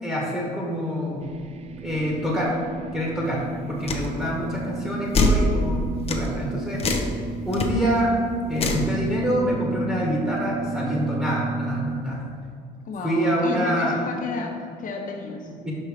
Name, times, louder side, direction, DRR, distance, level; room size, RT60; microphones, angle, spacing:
voice 1, 0.0-1.3 1.8-2.6 2.9-7.0 7.4-8.1 8.5-12.3 13.0-14.0 15.6-15.7, equal, 5° right, -4 dB, 1.5 m, -26 dB
sound 1, 1.2-12.0, right 3 dB, 40° right, 0.5 m, -32 dB
sound 2, 3.9-4.1 5.1-5.4 6.1-6.3 6.8-7.1 7.5-7.7 8.6-8.9, left 2 dB, 35° left, 0.8 m, -22 dB
voice 2, 12.8-15.5, left 4 dB, 50° left, 3 dB, 1.1 m, -31 dB
5.6 x 5.4 x 5.0 m, 2.2 s
cardioid pair, 110°, 17 cm